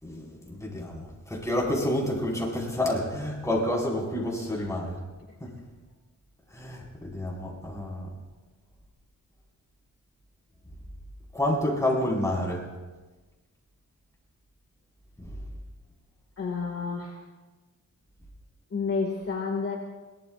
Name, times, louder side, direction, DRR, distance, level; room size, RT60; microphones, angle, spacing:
voice 1, 0.0-5.0 5.4-5.5 6.5-8.1 11.3-12.6 15.2-15.3, left 1 dB, 10° left, -3 dB, 4.9 m, -29 dB
voice 2, 16.4-17.2 18.7-19.8, left 4 dB, 50° left, 0 dB, 2.0 m, -30 dB
22.5 x 18.5 x 2.5 m, 1.2 s
wide cardioid pair, 105°, 31 cm